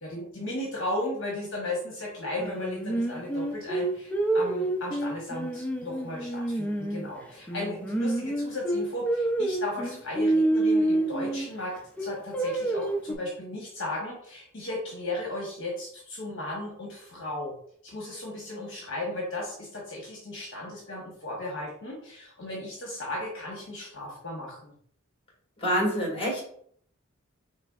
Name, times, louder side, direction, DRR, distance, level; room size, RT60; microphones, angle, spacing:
voice 1, 0.0-11.7 12.0-17.5 17.8-24.7, left 1 dB, 60° left, -2 dB, 1.0 m, -35 dB
Singing, 2.4-7.1 7.5-11.5 12.0-13.1, right 2 dB, 5° left, 0.4 m, -28 dB
voice 2, 25.6-26.4, equal, 25° left, -2 dB, 1.7 m, -26 dB
4.9 x 3.2 x 2.3 m, 0.63 s
head